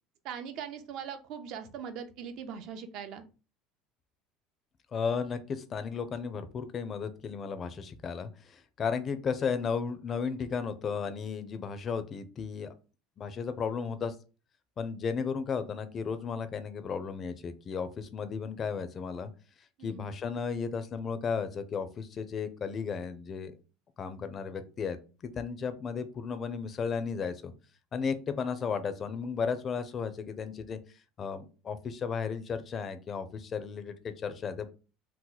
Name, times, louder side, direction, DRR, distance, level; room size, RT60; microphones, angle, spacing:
voice 1, 0.2-3.2 19.8-20.0, right 7 dB, 60° right, 8 dB, 0.5 m, -40 dB
voice 2, 4.9-12.7 13.2-14.1 14.8-19.3 19.8-23.5 24.0-27.5 27.9-30.8 31.2-34.7, left 6 dB, 35° left, 10 dB, 0.4 m, -34 dB
2.9 x 2.1 x 3.8 m, 0.34 s
supercardioid pair, 115°, 0 cm